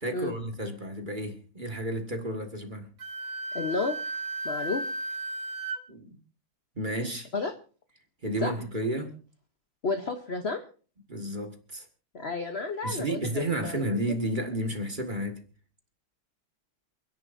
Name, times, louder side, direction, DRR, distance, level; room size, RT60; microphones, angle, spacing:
voice 1, 0.0-2.9 5.9-6.2 6.8-7.3 8.2-9.2 11.1-11.9 12.8-15.4, right 1 dB, 25° right, 1.6 m, -32 dB
Wind instrument woodwind instrument, 3.0-5.8, right 2 dB, 45° right, 1.2 m, -34 dB
voice 2, 3.5-4.0 4.4-4.9 7.3-7.5 8.4-8.5 9.8-10.7 12.1-13.8, left 3 dB, 50° left, 0.7 m, -31 dB
28.5 x 10.5 x 2.6 m
omnidirectional pair, 2.4 m